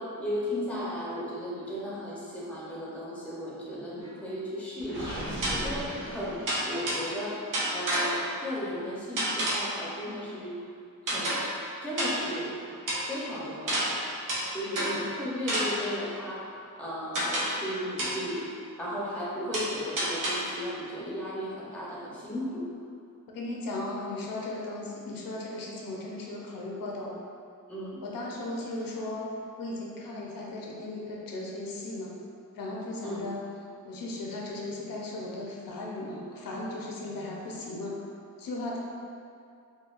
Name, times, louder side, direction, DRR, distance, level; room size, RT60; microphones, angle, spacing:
voice 1, 0.0-10.5 11.1-11.3 11.8-12.6 13.1-14.0 14.5-18.4 18.8-22.6 27.7-28.0 33.0-33.2, equal, 5° left, -7 dB, 0.6 m, -35 dB
sound 1, 4.0-4.1 5.4-5.8 6.5-7.2 7.5-8.4 9.2-9.8 11.1-11.6 12.0-12.4 12.9-13.1 13.7-15.1 15.5-16.0 17.1-17.7 18.0-18.3 19.5-20.6, right 1 dB, 70° right, 0.7 m, -30 dB
Gurgling, 4.8-7.0, right 1 dB, 35° right, 1.5 m, -37 dB
voice 2, 23.3-27.2 28.0-32.1 32.5-33.4 33.8-38.0 38.4-38.8, left 2 dB, 85° left, -3 dB, 0.6 m, -36 dB
4.0 x 2.2 x 2.4 m, 2.5 s
wide cardioid pair, 125°, 33 cm